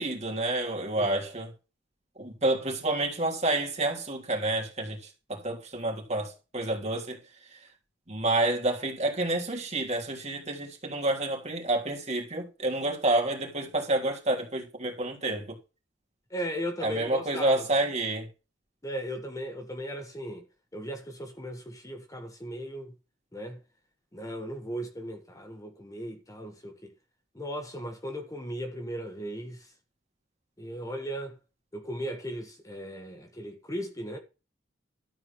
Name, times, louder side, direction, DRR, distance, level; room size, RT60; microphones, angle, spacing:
voice 1, 0.0-1.5 2.2-7.2 7.5-7.6 8.1-15.6 16.8-18.3, right 2 dB, 35° right, 3.2 m, -29 dB
voice 2, 1.0-1.3 16.3-17.6 18.8-20.4 20.7-22.9 23.3-23.6 24.1-26.9 27.3-29.7 30.6-31.4 31.7-34.2, equal, 20° left, 1.3 m, -37 dB
13.0 x 4.8 x 7.1 m
head